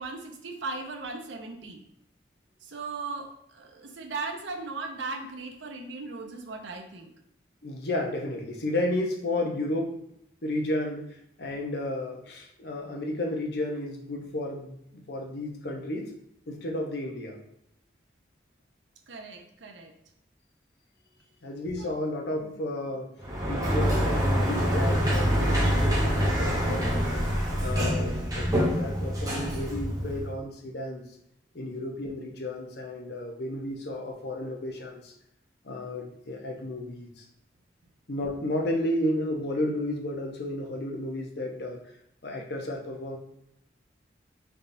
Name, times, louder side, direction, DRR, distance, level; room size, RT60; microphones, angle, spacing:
voice 1, 0.0-1.8 2.6-7.1 19.1-19.9 21.8-22.0 22.4-22.5, right 3 dB, 85° right, 4 dB, 0.6 m, -37 dB
voice 2, 7.6-10.0 10.4-16.1 16.5-17.4 21.4-23.1 23.5-27.2 27.6-31.1 31.5-35.1 35.6-37.2 38.1-41.8 42.2-43.2, left 1 dB, 60° left, 1 dB, 0.7 m, -32 dB
Sliding door, 23.2-30.4, equal, 20° right, 0.6 m, -26 dB
4.1 x 3.4 x 2.6 m, 0.76 s
head